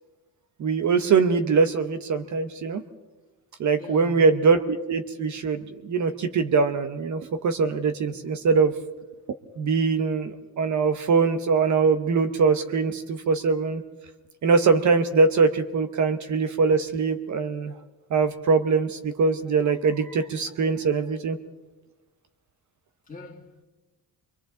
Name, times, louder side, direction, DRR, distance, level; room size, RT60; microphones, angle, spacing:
voice 1, 0.6-2.8 3.6-8.7 9.3-13.8 14.4-17.7 18.1-21.4, right 4 dB, 50° right, 0.9 m, -22 dB
voice 2, 3.7-4.4 21.1-21.2 23.1-23.6, left 3 dB, 20° left, 2.4 m, -43 dB
29.0 x 23.0 x 3.8 m
cardioid pair, 170°, 38 cm